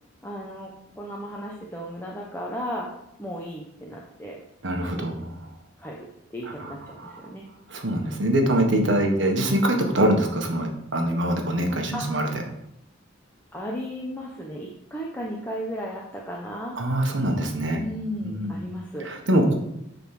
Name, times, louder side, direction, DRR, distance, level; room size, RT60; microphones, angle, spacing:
voice 1, 0.2-2.9 3.2-4.4 5.8-6.1 6.3-7.5 11.9-12.1 13.5-16.8 17.8-19.1, equal, 10° left, -3 dB, 1.0 m, -35 dB
voice 2, 4.6-5.3 6.6-6.7 7.7-12.3 16.8-17.8 18.2-18.5 19.1-19.5, right 1 dB, 65° right, 2 dB, 1.5 m, -23 dB
9.3 x 4.2 x 5.9 m, 0.80 s
head